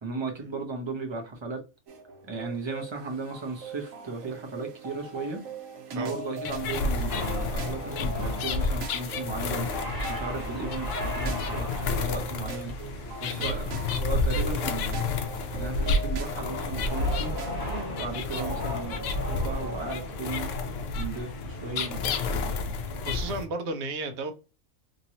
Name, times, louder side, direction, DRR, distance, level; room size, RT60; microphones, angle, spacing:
voice 1, 0.0-1.6 2.3-5.4 5.9-9.7 10.1-12.8 13.2-15.1 15.6-17.3 17.9-20.5 20.9-22.5, right 3 dB, 25° right, 0.6 m, -36 dB
sound 1, 1.9-17.8, right 3 dB, 90° right, 1.2 m, -40 dB
sound 2, 6.4-23.4, left 4 dB, 75° left, 0.9 m, -31 dB
sound 3, 7.1-23.4, equal, 35° left, 1.1 m, -37 dB
voice 2, 23.0-24.3, right 2 dB, 60° right, 1.0 m, -34 dB
3.0 x 2.9 x 2.7 m
omnidirectional pair, 1.3 m